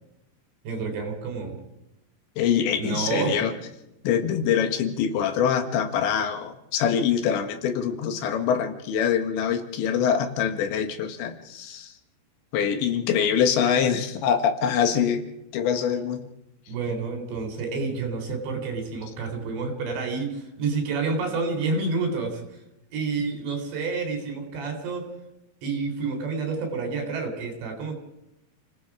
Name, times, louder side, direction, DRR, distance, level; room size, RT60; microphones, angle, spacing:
voice 1, 0.6-1.6 2.8-3.4 16.7-22.6 22.9-25.1 25.6-28.0, right 4 dB, 70° right, 4 dB, 6.0 m, -29 dB
voice 2, 2.4-3.5 4.0-11.9 12.5-15.3 15.5-16.2, left 8 dB, 75° left, 6 dB, 3.7 m, -24 dB
29.5 x 18.0 x 4.9 m, 0.89 s
omnidirectional pair, 5.3 m